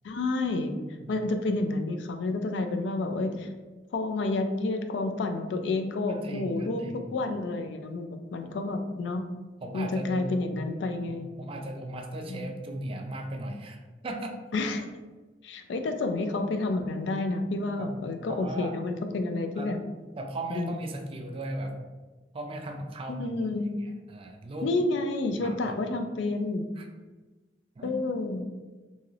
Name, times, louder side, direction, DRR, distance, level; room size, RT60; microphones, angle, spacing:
voice 1, 0.0-0.7 1.1-3.5 3.9-9.3 9.7-11.3 12.3-12.5 14.5-14.9 15.4-19.8 20.5-20.8 23.1-23.8 24.6-26.7 27.8-28.5, left 2 dB, 80° left, 6 dB, 0.3 m, -30 dB
voice 2, 6.1-7.1 9.6-10.6 11.1-13.8 14.0-14.4 17.8-17.9 18.3-18.7 19.6-19.7 20.2-21.7 22.3-23.4 23.8-24.7 25.4-25.7 26.8-26.9 27.8-28.0, right 1 dB, 30° right, 3 dB, 0.3 m, -37 dB
3.2 x 2.7 x 2.4 m, 1.3 s
head